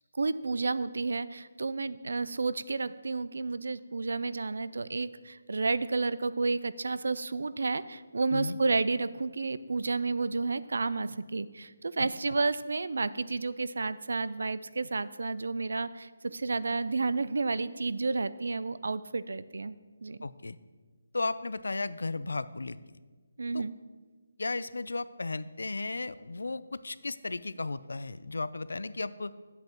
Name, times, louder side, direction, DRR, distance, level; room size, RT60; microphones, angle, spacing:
voice 1, 0.1-19.7 20.0-20.2 23.4-23.7, right 3 dB, 75° right, 16 dB, 0.3 m, -31 dB
voice 2, 20.2-20.6 21.1-22.8 23.5-23.6 24.4-29.3, left 3 dB, 90° left, 16 dB, 0.3 m, -34 dB
9.3 x 7.8 x 2.9 m, 1.4 s
hypercardioid pair, 165°, 0 cm